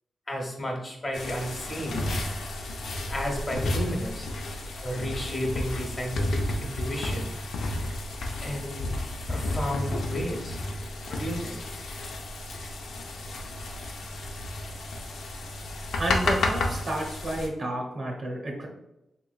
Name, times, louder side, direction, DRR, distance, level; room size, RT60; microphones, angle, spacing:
voice 1, 0.3-2.1 3.1-4.3 4.8-7.3 8.4-8.9 9.3-10.6 11.1-11.6, equal, 30° left, 0 dB, 0.9 m, -32 dB
sound 1, 1.1-17.5, left 2 dB, 85° left, 0.5 m, -32 dB
voice 2, 16.0-18.7, right 1 dB, 50° right, 0 dB, 0.6 m, -31 dB
3.5 x 3.0 x 2.4 m, 0.89 s
wide cardioid pair, 105°, 0 cm